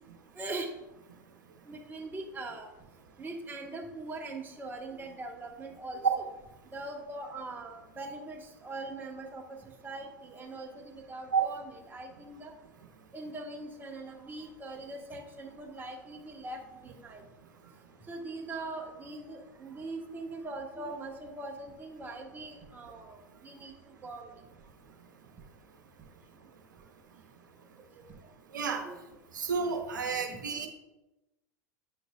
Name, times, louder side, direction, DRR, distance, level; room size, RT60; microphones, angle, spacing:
voice 1, 0.4-0.7 1.7-2.7 3.2-6.0 6.7-9.4 9.8-12.5 13.1-17.2 18.1-23.7 24.0-24.3 28.8-29.0, right 2 dB, 20° right, 1 dB, 1.2 m, -41 dB
voice 2, 28.5-28.8 29.3-30.7, right 5 dB, 80° right, 3 dB, 0.8 m, -30 dB
8.6 x 6.2 x 2.3 m, 0.98 s
hypercardioid pair, 90°, 10 cm